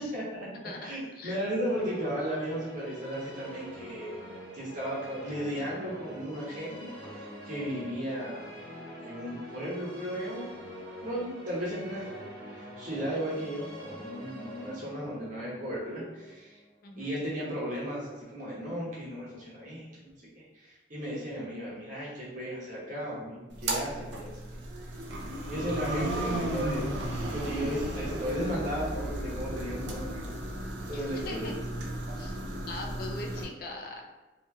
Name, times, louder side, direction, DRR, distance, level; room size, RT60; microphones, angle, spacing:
voice 1, 0.0-0.5 0.8-4.2 4.5-8.7 9.0-10.5 11.0-12.1 12.5-16.6 17.0-20.1 20.4-24.3 25.5-30.3 30.8-31.5, equal, 45° right, -7 dB, 1.0 m, -35 dB
voice 2, 0.6-1.4 16.8-17.2 25.7-25.8 30.9-31.5 32.2-34.0, left 2 dB, 55° left, 1 dB, 0.4 m, -42 dB
sound 1, 1.2-17.3, equal, 30° left, 1.2 m, -45 dB
sound 2, 23.5-33.4, right 1 dB, 90° right, 0.5 m, -35 dB
2.8 x 2.7 x 2.3 m, 1.2 s
head